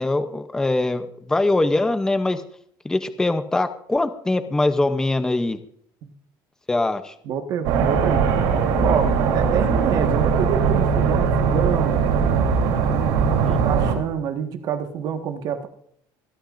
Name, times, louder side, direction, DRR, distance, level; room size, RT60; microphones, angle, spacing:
voice 1, 0.0-2.4 2.8-5.6 6.7-7.1 13.4-13.6, left 2 dB, 5° left, 10 dB, 0.7 m, -22 dB
voice 2, 7.3-8.3 8.8-15.7, right 7 dB, 45° right, 6 dB, 1.6 m, -27 dB
sound 1, 7.6-13.9, right 6 dB, 80° right, 3.3 m, -20 dB
25.5 x 8.7 x 2.6 m, 0.66 s
cardioid pair, 165°, 9 cm